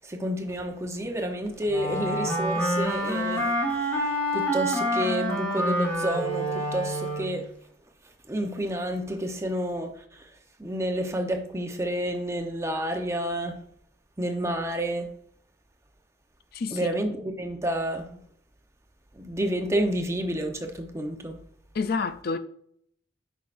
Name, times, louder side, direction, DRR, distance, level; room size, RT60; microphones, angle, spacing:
voice 1, 0.1-7.5 8.3-9.9 10.6-13.6 14.2-15.1 16.7-18.2 19.2-21.4, right 1 dB, 15° right, 0.8 m, -30 dB
Wind instrument woodwind instrument, 1.7-7.4, equal, 10° left, 1.7 m, -27 dB
voice 2, 21.7-22.4, left 4 dB, 55° left, 0.4 m, -28 dB
8.7 x 5.6 x 2.5 m
head